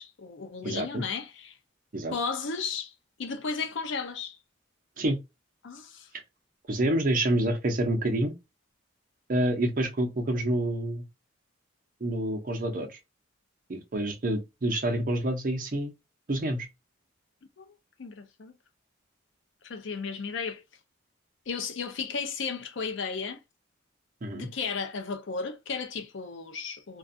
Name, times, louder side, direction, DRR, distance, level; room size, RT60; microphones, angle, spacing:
voice 1, 0.0-1.6 2.1-2.9 3.2-4.4 5.6-6.1 17.6-17.7 18.0-18.6 19.6-20.6 21.5-23.4 24.3-27.0, left 5 dB, 65° left, 0.5 m, -34 dB
voice 2, 0.6-1.0 1.9-2.1 5.0-5.2 6.7-8.3 9.3-11.1 12.0-13.0 13.7-15.9 16.3-16.7 24.2-24.5, right 1 dB, 40° right, 0.6 m, -28 dB
2.5 x 2.3 x 2.5 m
head